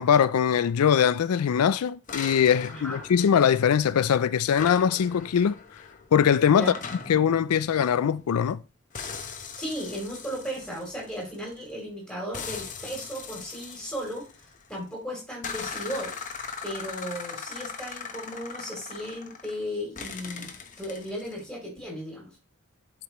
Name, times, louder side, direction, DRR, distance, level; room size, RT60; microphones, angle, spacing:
voice 1, 0.0-5.6 6.1-6.7 7.1-8.6, left 8 dB, 85° left, 0.4 m, -22 dB
sound 1, 2.1-4.1 4.5-8.6 8.9-11.7 12.3-14.8 15.4-19.6 20.0-21.4, left 5 dB, 35° left, 1.0 m, -40 dB
voice 2, 2.7-3.1 6.5-6.7 9.5-14.3 14.7-16.1 16.6-22.3, equal, 5° left, 2.8 m, -35 dB
11.5 x 5.1 x 3.0 m
head